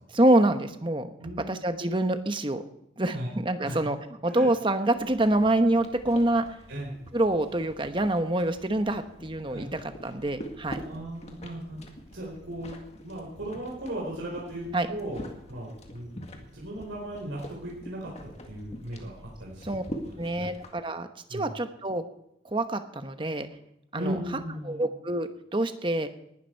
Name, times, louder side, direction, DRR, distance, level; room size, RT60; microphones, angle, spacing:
voice 1, 0.1-1.1 1.5-2.6 3.0-4.0 4.2-6.4 7.1-10.8 14.7-14.9 19.6-19.8 20.2-22.0 22.4-23.5 23.9-24.2 24.6-26.1, right 1 dB, 25° right, 8 dB, 1.0 m, -26 dB
voice 2, 1.2-1.6 3.1-3.3 3.6-3.8 4.3-4.8 6.7-6.9 9.5-9.7 10.8-11.8 12.1-19.7 20.0-20.5 21.3-21.5 23.9-24.8, right 1 dB, 90° right, -3 dB, 4.4 m, -37 dB
sound 1, 4.9-20.7, equal, 35° left, 1.9 m, -45 dB
19.5 x 12.0 x 4.6 m, 0.78 s
head